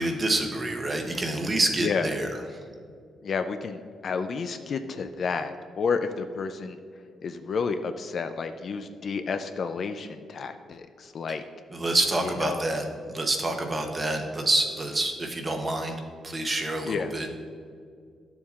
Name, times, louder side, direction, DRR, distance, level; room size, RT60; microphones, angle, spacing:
voice 1, 0.0-2.3 11.7-15.9 16.2-17.3, right 2 dB, 20° right, 4 dB, 0.8 m, -27 dB
voice 2, 3.2-6.8 7.2-11.4 12.2-12.6 16.8-17.1, left 5 dB, 40° left, 8 dB, 0.3 m, -31 dB
12.0 x 7.0 x 2.4 m, 2.2 s
cardioid pair, 165°, 0 cm